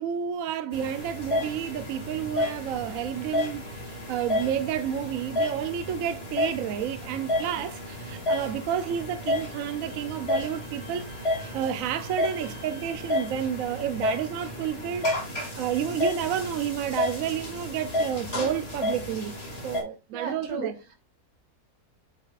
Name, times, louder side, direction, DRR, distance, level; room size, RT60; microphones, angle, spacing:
voice 1, 0.0-11.1 11.5-19.3 19.6-20.7, right 9 dB, 70° right, 0.9 m, -30 dB
sound 1, 0.7-19.8, left 1 dB, 40° left, 2.4 m, -31 dB
Wind instrument woodwind instrument, 9.6-13.5, right 1 dB, 60° left, 2.4 m, -52 dB
voice 2, 20.1-20.9, right 3 dB, 85° right, 2.1 m, -35 dB
8.2 x 5.3 x 2.4 m
omnidirectional pair, 1.6 m